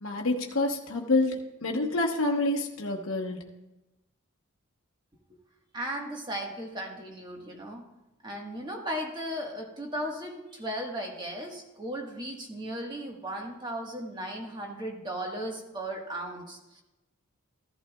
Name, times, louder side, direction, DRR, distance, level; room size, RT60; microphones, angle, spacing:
voice 1, 0.0-3.4, left 2 dB, 70° left, 1 dB, 1.0 m, -28 dB
voice 2, 5.7-7.8 8.2-16.8, right 1 dB, 20° right, 1 dB, 1.4 m, -36 dB
15.0 x 11.5 x 2.3 m, 1.0 s
head